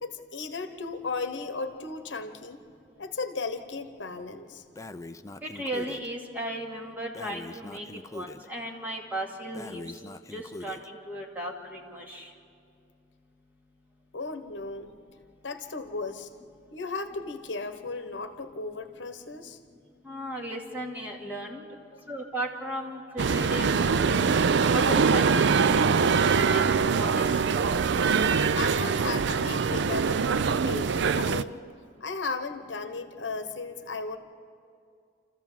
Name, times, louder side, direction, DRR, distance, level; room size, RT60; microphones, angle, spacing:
voice 1, 0.0-2.6 3.0-4.6 14.1-14.9 15.4-16.3 16.7-19.6 21.9-22.0 28.5-30.2 30.6-31.6 32.0-34.2, left 3 dB, 70° left, 8 dB, 1.1 m, -35 dB
Breathing, 4.7-6.1 7.1-8.5 9.5-10.9, left 2 dB, 15° left, 0.5 m, -42 dB
voice 2, 5.4-7.9 8.1-9.8 10.3-12.3 20.0-21.7 22.1-24.2 24.7-26.2 26.5-27.3, right 1 dB, 10° right, -2 dB, 2.5 m, -36 dB
sound 1, 23.2-31.4, right 5 dB, 70° right, 0.5 m, -23 dB
28.0 x 14.5 x 7.4 m, 2.4 s
head